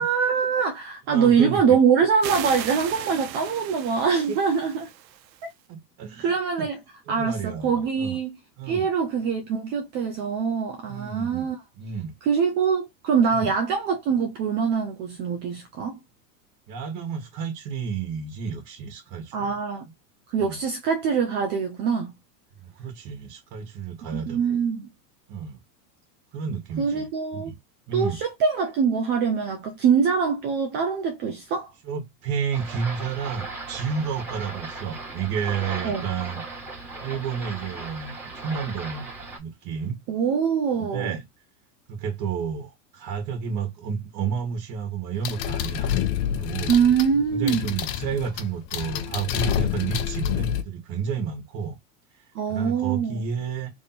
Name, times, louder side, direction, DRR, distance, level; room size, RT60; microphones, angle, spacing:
voice 1, 0.0-4.9 6.2-6.8 7.1-8.3 8.7-11.6 12.3-16.0 19.3-19.9 20.3-22.1 24.1-24.9 26.8-27.5 27.9-31.7 35.8-36.1 40.1-41.1 46.7-47.7 52.3-53.2, right 6 dB, 25° right, 0.3 m, -23 dB
voice 2, 1.1-1.6 4.3-4.4 5.7-6.7 7.1-8.2 8.6-8.9 10.9-11.5 11.8-12.1 13.3-13.5 16.7-19.6 20.4-20.6 22.6-24.6 25.3-25.6 26.3-27.1 27.3-27.6 27.9-28.2 31.8-36.4 37.0-39.1 39.4-40.0 40.9-41.2 41.9-45.9 46.4-46.7 47.3-51.8 52.1-53.7, right 6 dB, 40° right, 1.4 m, -31 dB
sound 1, 2.2-5.5, right 12 dB, 90° right, 0.8 m, -36 dB
sound 2, 32.5-39.4, right 3 dB, 5° right, 1.4 m, -37 dB
sound 3, 45.2-50.6, left 10 dB, 50° left, 0.7 m, -28 dB
3.4 x 2.7 x 4.1 m
supercardioid pair, 140°, 49 cm